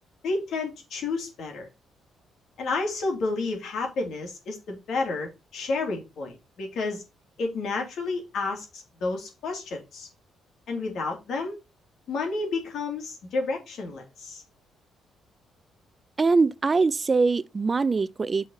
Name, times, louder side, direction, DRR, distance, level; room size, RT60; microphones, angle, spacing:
voice 1, 0.2-1.6 2.6-7.0 7.4-10.1 10.7-11.6 12.1-14.4, left 3 dB, 70° left, 3.0 m, -31 dB
voice 2, 16.2-18.5, right 4 dB, 30° right, 0.4 m, -23 dB
6.2 x 4.4 x 5.6 m
cardioid pair, 90°, 0 cm